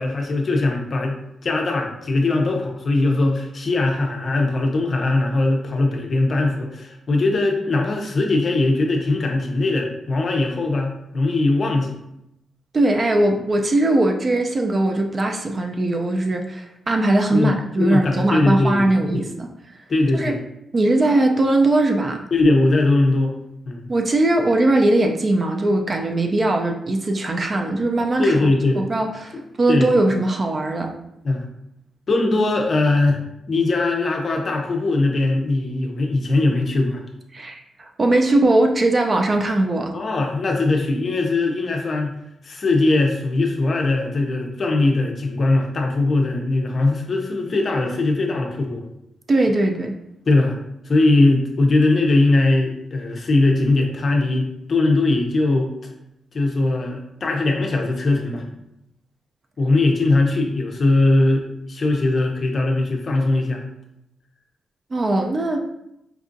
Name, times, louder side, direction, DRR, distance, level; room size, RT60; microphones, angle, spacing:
voice 1, 0.0-12.0 17.3-19.2 19.9-20.4 22.3-23.3 23.7-23.9 28.2-28.8 29.7-29.9 31.2-31.5 32.1-33.2 33.5-37.0 39.9-42.1 42.4-48.8 50.3-50.5 50.8-55.7 56.3-58.4 59.6-63.6, left 2 dB, 45° left, 2 dB, 0.5 m, -20 dB
voice 2, 12.7-19.5 20.1-20.4 20.7-22.2 23.9-28.5 28.8-30.9 37.3-39.9 49.3-49.9 64.9-65.6, right 2 dB, 35° right, 4 dB, 0.3 m, -20 dB
4.5 x 2.4 x 2.5 m, 0.82 s
wide cardioid pair, 130°, 0 cm